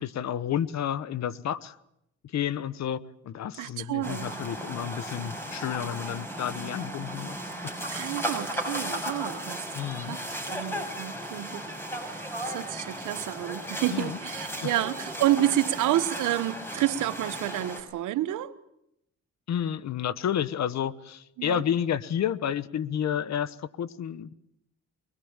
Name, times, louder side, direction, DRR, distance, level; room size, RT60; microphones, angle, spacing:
voice 1, 0.0-1.8 2.2-7.4 7.6-7.8 9.7-10.2 13.9-14.2 14.6-14.7 19.5-24.3, left 9 dB, 60° left, 1.1 m, -31 dB
voice 2, 3.6-4.3 7.9-9.6 10.0-10.2 10.5-11.6 12.0-18.6 21.4-21.6, right 13 dB, 85° right, 1.2 m, -29 dB
sound 1, 4.0-17.8, right 1 dB, 10° left, 6.3 m, -35 dB
23.5 x 20.5 x 8.8 m
cardioid pair, 90°, 30 cm